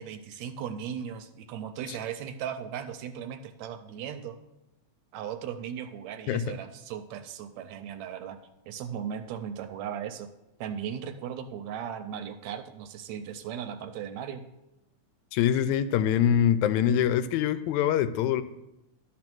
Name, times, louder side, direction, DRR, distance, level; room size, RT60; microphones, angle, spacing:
voice 1, 0.0-4.4 5.1-8.4 8.7-10.3 10.6-14.4, right 8 dB, 80° right, 9 dB, 1.7 m, -37 dB
voice 2, 6.3-6.6 15.3-18.4, left 9 dB, 85° left, 13 dB, 1.9 m, -24 dB
12.0 x 4.3 x 6.1 m, 0.90 s
omnidirectional pair, 3.4 m